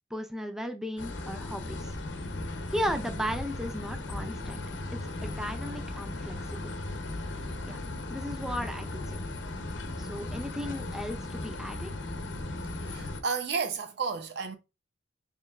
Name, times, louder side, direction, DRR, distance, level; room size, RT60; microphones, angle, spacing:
voice 1, 0.1-2.0 2.7-4.6 4.9-6.7 7.7-7.8 8.1-9.2 10.0-11.9, equal, 5° right, 0.4 m, -36 dB
sound 1, 1.0-13.2, left 2 dB, 70° left, 0.7 m, -37 dB
voice 2, 12.8-14.6, right 5 dB, 60° right, 0.6 m, -32 dB
4.3 x 3.1 x 2.4 m
head